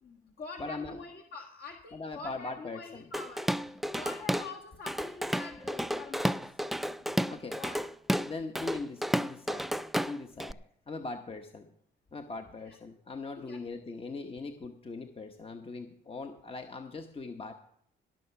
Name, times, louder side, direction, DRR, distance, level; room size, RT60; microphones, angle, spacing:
voice 1, 0.0-6.4 7.6-7.8 12.6-12.8 13.5-13.6, left 4 dB, 50° left, 2 dB, 1.6 m, -45 dB
voice 2, 0.6-1.0 1.9-3.1 7.3-7.6 8.2-9.7 10.1-10.6 10.9-11.7 12.1-17.5, left 3 dB, 30° left, 6 dB, 1.0 m, -40 dB
Drum kit / Drum, 3.1-4.5 4.9-10.5, equal, ahead, 0.4 m, -32 dB
18.0 x 6.5 x 5.8 m, 0.70 s
cardioid pair, 90°, 20 cm